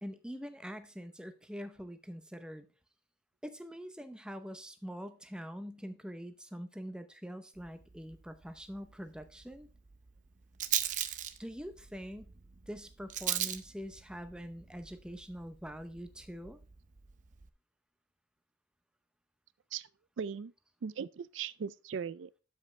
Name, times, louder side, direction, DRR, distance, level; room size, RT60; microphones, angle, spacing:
voice 1, 0.0-2.7 3.4-9.7 11.4-12.3 12.7-16.6, equal, 5° right, 0.7 m, -44 dB
Rattle, 7.6-17.5, right 11 dB, 40° right, 0.6 m, -40 dB
voice 2, 20.2-20.5 20.8-22.4, right 6 dB, 90° right, 0.4 m, -39 dB
12.0 x 5.4 x 3.2 m
head